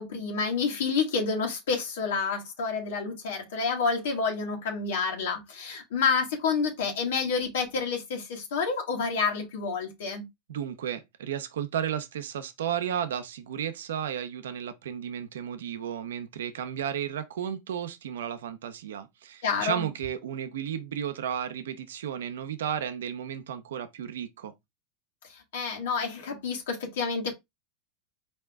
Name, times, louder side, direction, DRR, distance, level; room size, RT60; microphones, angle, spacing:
voice 1, 0.0-10.3 19.4-19.9 25.5-27.3, left 5 dB, 85° left, 1.6 m, -29 dB
voice 2, 10.5-24.5, right 9 dB, 90° right, 0.7 m, -33 dB
4.4 x 2.9 x 3.5 m
supercardioid pair, 125°, 0 cm